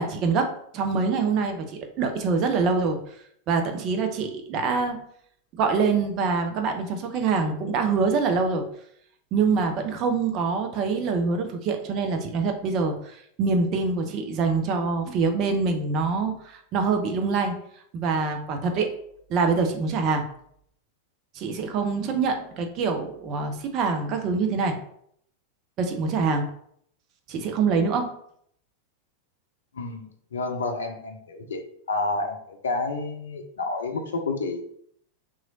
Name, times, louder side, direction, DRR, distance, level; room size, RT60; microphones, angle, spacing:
voice 1, 0.0-3.0 3.5-5.0 5.6-8.6 9.3-17.6 17.9-18.9 19.3-20.2 21.3-24.7 25.8-26.5 27.3-28.1, right 4 dB, 40° right, 4 dB, 0.4 m, -25 dB
voice 2, 29.7-31.6 31.9-34.7, left 3 dB, 65° left, 5 dB, 0.5 m, -30 dB
3.0 x 2.4 x 3.8 m, 0.68 s
figure-of-eight pair, 90°, 0 cm